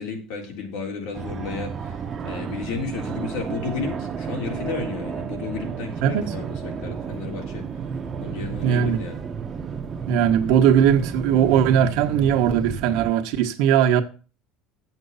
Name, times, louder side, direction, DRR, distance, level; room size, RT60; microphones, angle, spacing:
voice 1, 0.0-2.0 2.2-7.6 8.2-9.2, left 5 dB, 85° left, 3.8 m, -33 dB
Fixed-wing aircraft airplane, 1.1-13.1, right 6 dB, 25° right, 0.9 m, -32 dB
voice 2, 6.0-6.3 7.8-8.0 8.6-9.0 10.1-14.0, right 9 dB, 70° right, 1.3 m, -19 dB
9.2 x 8.0 x 5.7 m
cardioid pair, 155°, 0 cm